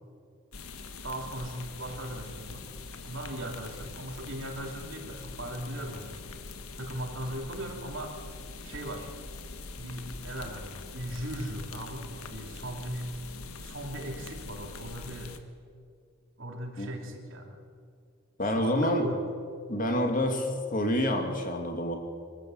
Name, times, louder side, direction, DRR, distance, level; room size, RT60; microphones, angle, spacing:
sound 1, 0.5-15.4, left 3 dB, 90° left, 1.5 m, -43 dB
voice 1, 1.0-2.7 3.0-6.4 6.8-8.2 8.6-9.1 9.7-13.1 13.6-15.3 16.4-17.6 18.4-19.3, right 1 dB, 65° right, 2 dB, 3.2 m, -38 dB
voice 2, 18.4-19.0 19.7-22.0, left 1 dB, 40° left, 4 dB, 2.5 m, -27 dB
25.0 x 14.0 x 8.0 m, 2.2 s
head